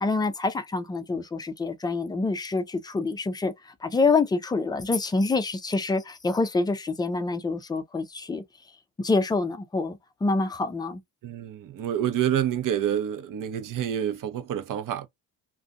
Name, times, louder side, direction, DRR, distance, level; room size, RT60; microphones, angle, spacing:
voice 1, 0.0-8.4 9.0-11.0, left 3 dB, 10° left, 0.4 m, -26 dB
voice 2, 11.2-15.1, right 10 dB, 45° right, 0.7 m, -28 dB
2.4 x 2.3 x 2.4 m
hypercardioid pair, 70°, 46 cm